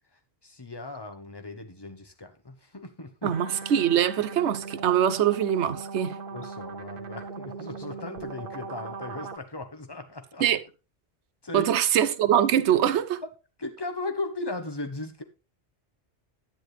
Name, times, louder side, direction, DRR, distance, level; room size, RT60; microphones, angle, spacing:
voice 1, 0.4-3.4 6.3-10.5 11.4-11.7 13.6-15.2, left 2 dB, 25° left, 1.2 m, -37 dB
voice 2, 3.2-6.2 10.4-10.6 11.5-13.2, right 10 dB, 90° right, 1.0 m, -23 dB
sound 1, 3.3-9.4, right 4 dB, 55° right, 1.1 m, -39 dB
10.0 x 9.9 x 3.3 m
omnidirectional pair, 1.1 m